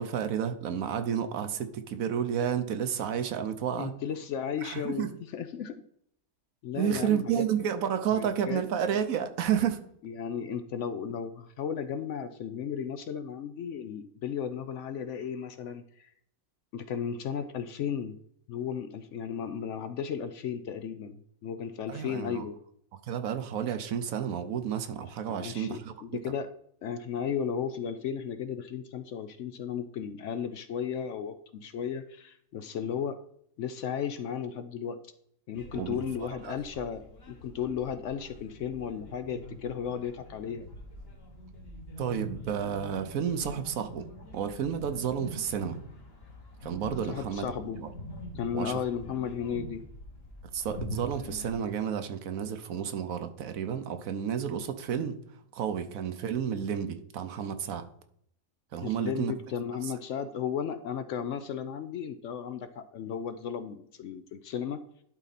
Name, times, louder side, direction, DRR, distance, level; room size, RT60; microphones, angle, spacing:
voice 1, 0.0-3.9 4.6-5.1 6.7-9.8 21.9-22.5 23.0-25.9 35.7-36.0 36.4-36.5 42.0-44.1 44.3-45.8 46.6-47.9 48.5-48.8 50.5-55.2 55.5-57.9 58.7-59.3 59.8-59.9, right 8 dB, 70° right, 9 dB, 1.1 m, -31 dB
voice 2, 3.8-5.8 6.6-7.5 8.1-8.6 10.0-16.1 16.7-18.2 18.5-22.6 25.3-26.5 26.8-33.2 33.6-35.0 35.5-40.7 47.1-47.8 48.3-49.8 58.8-64.8, left 8 dB, 65° left, 10 dB, 0.8 m, -35 dB
sound 1, 35.5-51.6, left 1 dB, 45° left, 1.4 m, -44 dB
11.5 x 4.1 x 4.1 m, 0.69 s
omnidirectional pair, 1.5 m